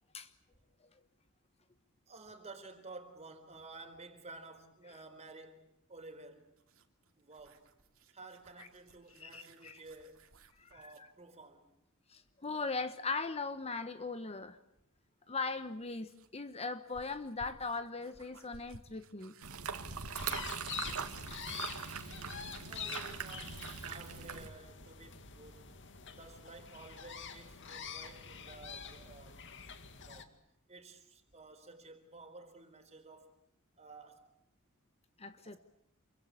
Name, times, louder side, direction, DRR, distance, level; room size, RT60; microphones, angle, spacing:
voice 1, 2.1-5.6 5.9-6.5 7.2-7.7 8.1-10.2 10.7-11.7 22.7-25.7 26.1-29.4 30.1-30.2 30.7-33.4 33.8-34.3 35.4-35.6, right 3 dB, 30° right, 4.3 m, -53 dB
sound 1, 6.6-11.1 13.4-13.5 15.5-21.3, right 1 dB, 65° right, 2.7 m, -55 dB
voice 2, 9.1-9.8 10.6-11.1 12.1-14.6 15.3-19.3 35.2-35.6, left 4 dB, 30° left, 1.1 m, -39 dB
sound 2, 19.4-24.5, right 6 dB, 85° right, 2.3 m, -41 dB
sound 3, 20.1-30.2, left 7 dB, 60° left, 2.2 m, -47 dB
28.0 x 24.0 x 8.4 m
head